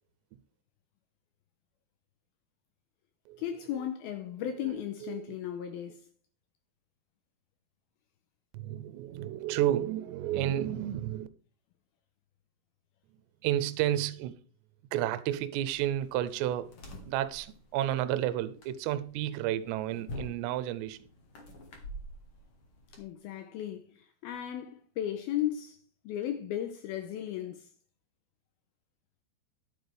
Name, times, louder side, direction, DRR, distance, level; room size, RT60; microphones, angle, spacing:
voice 1, 3.4-6.1 23.0-27.7, left 11 dB, 85° left, 2.2 m, -36 dB
voice 2, 8.5-11.3 13.4-14.4 14.9-16.7 17.1-21.0, right 12 dB, 85° right, 2.8 m, -31 dB
sound 1, 15.7-23.0, equal, 55° left, 1.5 m, -47 dB
11.0 x 8.1 x 3.4 m
omnidirectional pair, 5.0 m